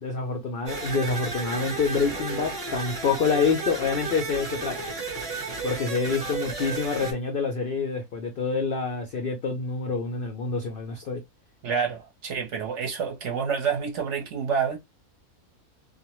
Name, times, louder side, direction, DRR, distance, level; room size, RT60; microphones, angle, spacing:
voice 1, 0.0-4.8 5.6-11.2, left 5 dB, 70° left, 0.5 m, -27 dB
sound 1, 0.7-7.1, right 3 dB, 35° right, 0.7 m, -33 dB
voice 2, 11.6-14.8, right 6 dB, 60° right, 0.9 m, -28 dB
2.5 x 2.1 x 2.9 m
omnidirectional pair, 1.6 m